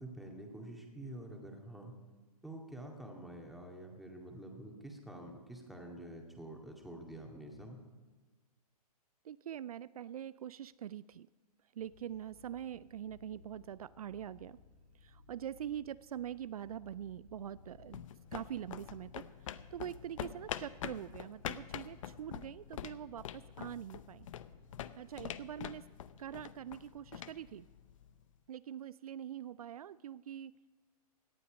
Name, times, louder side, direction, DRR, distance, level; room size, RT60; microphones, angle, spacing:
voice 1, 0.0-1.9 2.4-7.8, right 1 dB, ahead, 0 dB, 2.2 m, -48 dB
voice 2, 9.2-11.3 11.7-14.6 15.0-18.0 18.3-19.3 19.7-24.3 25.0-25.9 26.2-27.7 28.5-30.6, right 10 dB, 65° right, 17 dB, 0.4 m, -44 dB
sound 1, 11.8-25.7, left 4 dB, 80° left, 1.9 m, -61 dB
sound 2, 17.5-28.3, left 10 dB, 55° left, 0.7 m, -46 dB
18.0 x 11.0 x 5.1 m, 1.4 s
hypercardioid pair, 125°, 20 cm